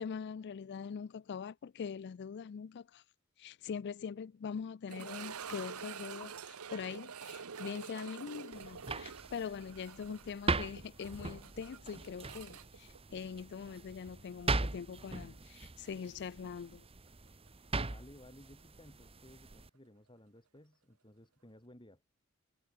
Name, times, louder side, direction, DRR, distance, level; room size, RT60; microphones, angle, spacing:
voice 1, 0.0-3.0 3.4-16.8, left 6 dB, 50° left, 0.4 m, -43 dB
sound 1, 4.9-13.8 14.1-14.2 14.8-14.9 17.5-17.6, right 6 dB, 90° right, 1.0 m, -47 dB
sound 2, 8.5-19.7, right 3 dB, 25° right, 1.2 m, -40 dB
voice 2, 17.8-22.0, left 1 dB, 20° left, 6.3 m, -57 dB
head